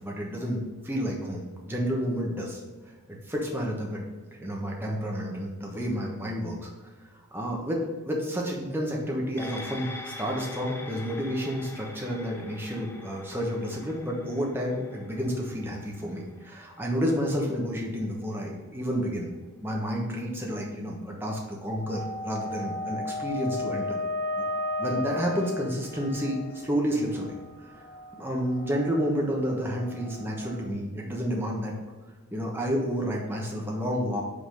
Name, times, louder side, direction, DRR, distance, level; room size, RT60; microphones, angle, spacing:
voice 1, 0.0-2.6 3.1-4.0 4.4-6.7 7.3-19.3 19.6-24.0 24.8-27.3 28.2-31.7 32.3-34.2, equal, 10° right, -2 dB, 1.1 m, -30 dB
sound 1, 9.4-18.1 18.4-18.5, left 2 dB, 10° left, 0.5 m, -45 dB
sound 2, 21.8-30.6, left 2 dB, 50° left, 1.7 m, -35 dB
5.2 x 4.1 x 5.3 m, 1.3 s
head